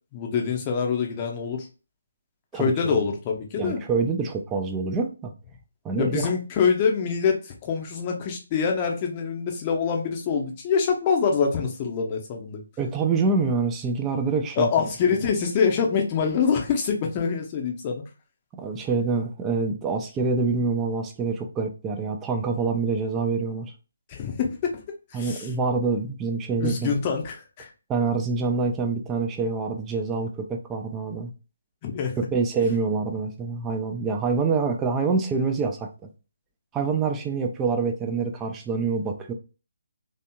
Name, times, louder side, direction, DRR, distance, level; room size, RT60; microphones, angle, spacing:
voice 1, 0.1-1.7 2.5-3.8 6.0-12.6 14.6-18.0 24.1-24.8 25.1-25.5 26.6-27.7 31.8-32.1, left 6 dB, 25° left, 2 dB, 0.7 m, -25 dB
voice 2, 3.6-5.3 5.8-6.3 12.8-14.7 18.6-23.7 25.1-26.9 27.9-31.3 32.3-35.9 36.7-39.3, right 4 dB, 10° right, 3 dB, 0.4 m, -26 dB
3.3 x 2.8 x 2.2 m, 0.33 s
figure-of-eight pair, 145°, 0 cm